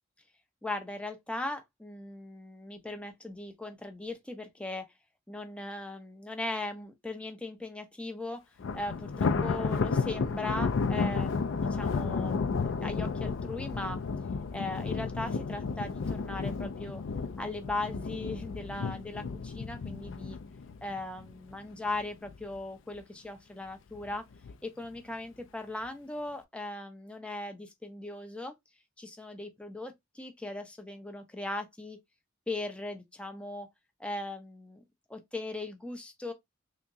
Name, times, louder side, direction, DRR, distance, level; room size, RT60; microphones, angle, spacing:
voice 1, 0.6-4.8 5.3-8.4 8.7-14.0 14.5-17.0 17.4-20.4 20.8-24.2 24.6-28.5 29.0-32.0 32.5-33.7 34.0-34.8 35.1-36.3, left 2 dB, 5° left, 0.6 m, -38 dB
Thunder, 8.6-21.9 22.3-22.6 23.0-23.1 23.9-24.5, left 4 dB, 65° left, 0.4 m, -32 dB
3.5 x 2.9 x 2.6 m
head